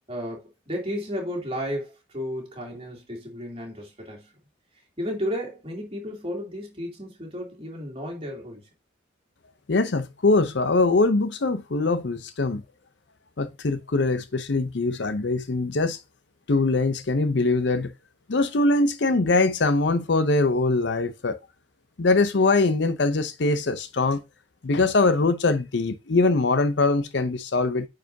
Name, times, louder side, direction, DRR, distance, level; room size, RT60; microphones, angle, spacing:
voice 1, 0.1-4.3 5.0-8.7 19.1-19.2, equal, 30° right, 2.8 m, -33 dB
voice 2, 9.7-12.6 13.4-16.0 16.5-17.9 18.3-21.4 22.0-24.2 24.6-27.9, left 3 dB, 65° left, 0.7 m, -22 dB
9.1 x 4.8 x 2.7 m
head